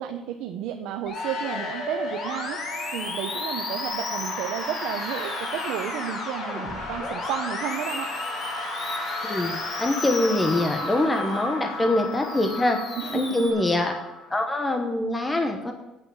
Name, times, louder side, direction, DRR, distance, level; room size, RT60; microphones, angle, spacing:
voice 1, 0.0-2.6 2.9-8.1 13.0-13.5, right 10 dB, 80° right, 4 dB, 0.8 m, -32 dB
sound 1, 1.1-14.8, left 2 dB, 60° left, 3.6 m, -34 dB
Musical instrument, 1.1-11.5 11.9-13.5, left 3 dB, 30° left, 1.6 m, -36 dB
voice 2, 9.2-12.8 13.1-14.0 14.3-15.7, left 2 dB, 10° left, 4 dB, 1.0 m, -24 dB
9.3 x 8.4 x 7.0 m, 0.99 s
cardioid pair, 180°, 0 cm